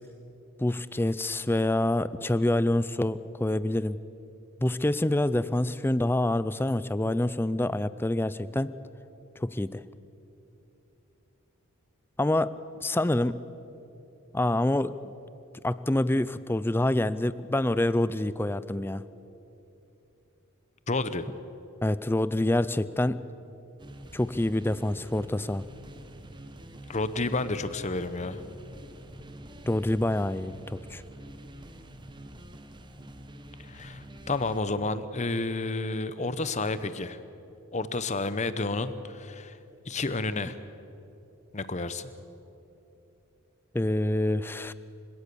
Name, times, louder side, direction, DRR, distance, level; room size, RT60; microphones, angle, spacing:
voice 1, 0.6-4.0 4.6-8.7 9.4-9.8 12.2-12.5 12.8-13.4 14.3-15.1 15.6-19.0 21.8-23.2 24.1-25.7 29.6-31.0 43.7-44.7, left 1 dB, 10° left, 15 dB, 0.4 m, -26 dB
voice 2, 20.9-21.2 26.9-28.4 33.7-37.2 37.7-39.6 39.9-40.6 41.5-42.1, left 3 dB, 35° left, 13 dB, 0.9 m, -30 dB
sound 1, 23.8-34.6, right 1 dB, 20° right, 1.1 m, -46 dB
28.5 x 17.0 x 7.0 m, 3.0 s
head